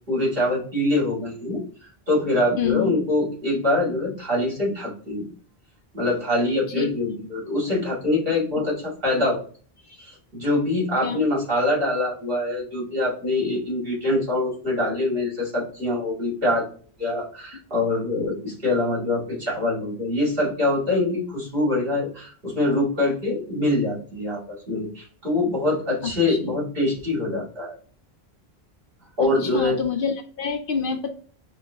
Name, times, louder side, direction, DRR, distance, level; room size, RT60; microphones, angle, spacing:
voice 1, 0.1-1.6 2.1-5.2 5.9-9.4 9.9-16.7 17.0-24.4 24.7-27.8 29.2-29.8, left 2 dB, 60° right, -5 dB, 2.3 m, -24 dB
voice 2, 2.6-3.0 6.7-6.9 11.0-11.2 26.0-26.4 29.2-31.1, left 6 dB, 65° left, 5 dB, 0.7 m, -27 dB
5.6 x 2.2 x 2.6 m, 0.43 s
omnidirectional pair, 1.1 m